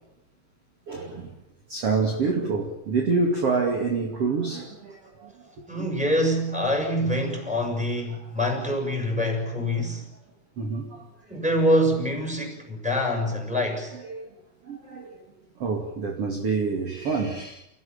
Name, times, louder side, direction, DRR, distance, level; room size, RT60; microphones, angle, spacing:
voice 1, 0.9-1.4 1.7-5.3 10.6-11.1 14.1-14.3 14.7-15.2 15.6-17.6, right 4 dB, 40° right, 3.1 m, -27 dB
voice 2, 5.7-10.1 11.3-13.9, equal, ahead, 6.4 m, -25 dB
29.5 x 17.5 x 8.8 m
omnidirectional pair, 4.6 m